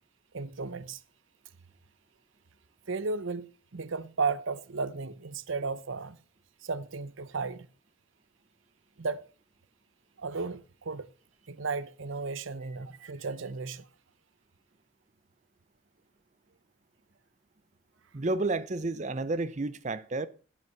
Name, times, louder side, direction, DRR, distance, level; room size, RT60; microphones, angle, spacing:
voice 1, 0.3-1.0 2.9-3.4 3.7-6.2 6.6-7.7 9.0-9.2 10.2-11.1 11.5-13.8, right 4 dB, 70° right, 0.7 m, -34 dB
voice 2, 18.1-20.3, right 2 dB, 35° right, 0.6 m, -31 dB
15.0 x 8.1 x 5.7 m
head